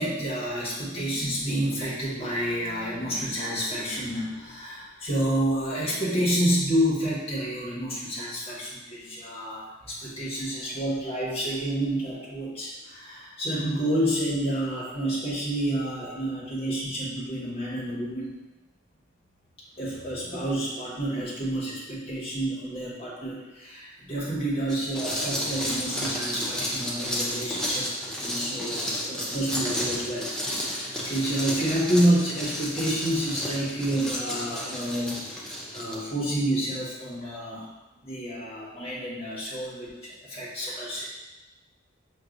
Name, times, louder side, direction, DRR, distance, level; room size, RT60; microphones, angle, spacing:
voice 1, 0.0-18.3 19.8-35.2 35.7-37.7 38.0-41.1, right 1 dB, 30° left, -7 dB, 1.2 m, -29 dB
sound 1, 24.7-36.0, equal, 5° left, 0.5 m, -32 dB
5.9 x 2.6 x 2.6 m, 1.1 s
head